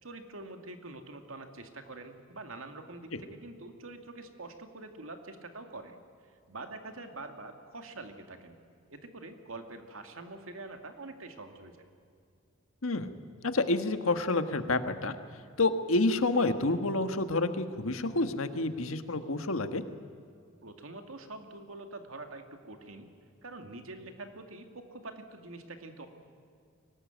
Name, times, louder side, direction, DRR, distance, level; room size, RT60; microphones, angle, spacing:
voice 1, 0.0-6.0 6.5-8.6 8.9-11.9 20.6-23.1 23.4-26.1, right 2 dB, 85° right, 6 dB, 2.3 m, -45 dB
voice 2, 12.8-13.1 13.4-15.1 15.6-19.8, left 2 dB, 85° left, 9 dB, 1.5 m, -28 dB
23.5 x 19.0 x 9.3 m, 2.4 s
head